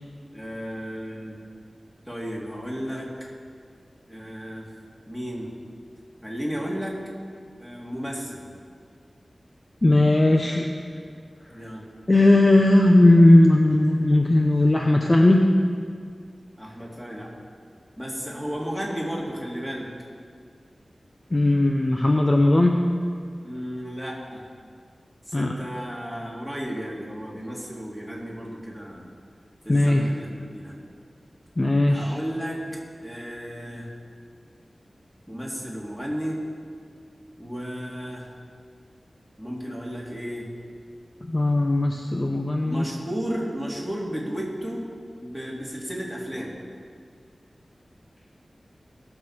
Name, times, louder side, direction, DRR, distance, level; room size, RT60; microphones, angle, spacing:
voice 1, 0.3-1.4 2.1-3.1 4.1-4.7 5.1-5.5 6.2-7.0 7.6-8.5 11.5-11.9 15.0-15.2 16.6-17.3 18.0-19.9 23.4-24.4 25.3-29.1 29.6-30.3 30.5-30.8 31.9-32.6 33.0-33.9 35.3-36.4 37.4-38.3 39.4-40.5 42.6-44.9 45.2-46.6, equal, 5° left, -4 dB, 2.9 m, -33 dB
voice 2, 9.8-10.7 12.1-15.5 21.3-22.9 25.3-25.5 29.7-30.0 31.6-32.1 41.3-42.8, left 1 dB, 30° left, 2 dB, 0.7 m, -18 dB
19.5 x 6.9 x 4.4 m, 2.1 s
wide cardioid pair, 70°, 0 cm